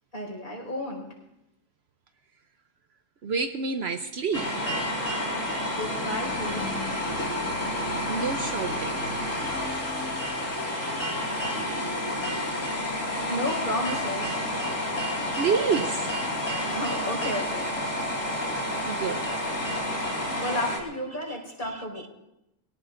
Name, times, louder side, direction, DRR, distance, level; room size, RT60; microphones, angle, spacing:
voice 1, 0.1-1.1 5.8-6.7 13.3-14.5 16.7-17.7 20.4-22.1, left 1 dB, 40° left, -2 dB, 5.3 m, -32 dB
voice 2, 3.2-5.8 6.7-7.2 8.1-8.9 10.7-11.9 15.3-16.8 18.3-18.4 18.8-19.3 21.3-21.4, right 5 dB, 60° right, 7 dB, 0.9 m, -31 dB
sound 1, 4.3-20.8, left 1 dB, 80° left, 2.6 m, -30 dB
24.0 x 17.5 x 2.6 m, 0.87 s
omnidirectional pair, 1.3 m